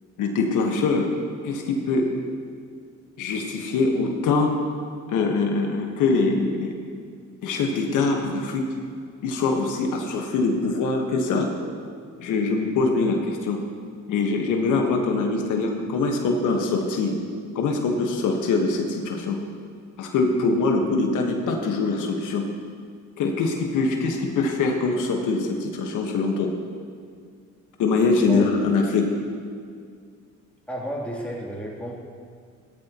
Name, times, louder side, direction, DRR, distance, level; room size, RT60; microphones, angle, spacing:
voice 1, 0.2-1.1 1.4-2.1 3.2-4.5 5.1-6.7 7.4-8.6 9.2-11.5 12.2-13.6 14.1-17.1 17.5-19.4 20.0-22.4 23.2-26.5 27.8-29.1, left 3 dB, 85° left, 2 dB, 1.5 m, -23 dB
voice 2, 30.7-31.9, equal, 5° left, -5 dB, 3.2 m, -32 dB
16.5 x 13.5 x 3.1 m, 2.2 s
cardioid pair, 90°, 30 cm